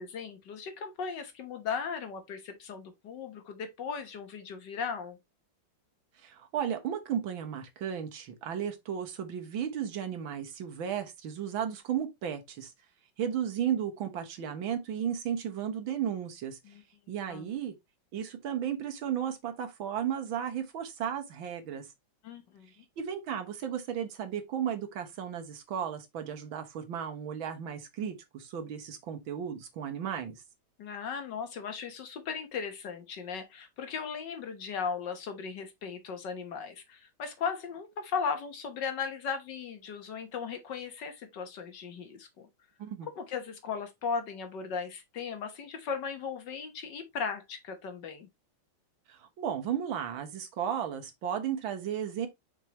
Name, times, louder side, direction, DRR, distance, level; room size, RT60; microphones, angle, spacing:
voice 1, 0.0-5.2 16.6-16.8 17.3-17.5 22.2-22.8 30.8-42.5 43.2-48.3, left 6 dB, 65° left, 1.7 m, -37 dB
voice 2, 6.2-12.7 13.2-16.6 17.1-17.7 18.1-21.9 23.0-30.4 42.8-43.1 49.1-52.3, right 9 dB, 75° right, 2.0 m, -34 dB
5.7 x 5.7 x 3.0 m
omnidirectional pair, 2.2 m